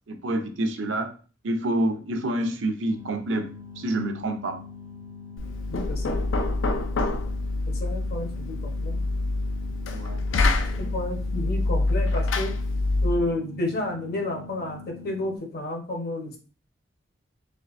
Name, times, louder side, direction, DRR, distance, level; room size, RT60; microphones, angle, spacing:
voice 1, 0.1-1.1 1.4-3.5 3.8-4.6 9.9-10.2 10.5-10.9, right 1 dB, 75° right, 6 dB, 0.6 m, -28 dB
sound 1, 2.9-15.4, left 5 dB, 20° right, 0.4 m, -43 dB
Knock, 5.4-13.3, left 2 dB, 85° left, 0.5 m, -26 dB
voice 2, 5.7-6.2 7.7-9.0 10.8-12.6 13.0-16.4, left 1 dB, 55° left, 2 dB, 0.9 m, -31 dB
4.4 x 3.2 x 2.5 m, 0.38 s
head